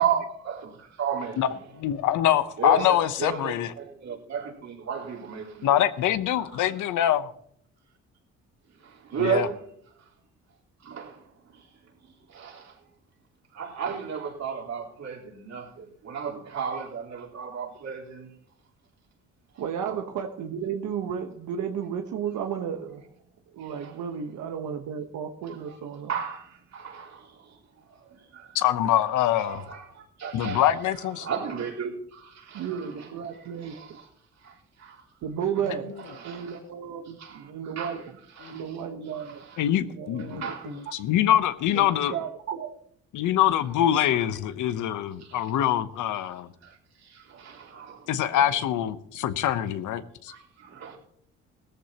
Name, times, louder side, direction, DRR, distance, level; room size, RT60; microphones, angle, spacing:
voice 1, 0.0-1.6 2.6-5.8 6.5-6.7 8.8-9.6 10.0-10.1 10.8-11.2 11.5-11.7 12.0-12.8 13.5-18.3 19.8-20.0 23.6-23.9 25.5-25.8 26.1-27.6 27.9-28.6 29.2-30.7 31.2-34.1 34.4-35.0 36.0-36.6 37.2-38.0 38.4-38.8 39.2-39.6 40.3-40.9 45.2-45.5 46.6-48.4 50.3-51.0, right 7 dB, 60° right, 4.0 m, -34 dB
voice 2, 1.8-3.7 5.6-7.3 9.2-9.5 28.5-29.6 30.3-31.3 36.6-36.7 38.4-38.6 39.6-42.1 43.1-46.5 48.1-50.3, left 11 dB, 80° left, 0.9 m, -24 dB
voice 3, 19.6-23.0 23.5-26.1 32.5-33.8 35.2-35.9 36.2-38.2 38.5-39.4 40.0-40.8 41.7-42.7, right 8 dB, 75° right, 1.2 m, -33 dB
17.5 x 14.0 x 2.9 m
cardioid pair, 90°, 30 cm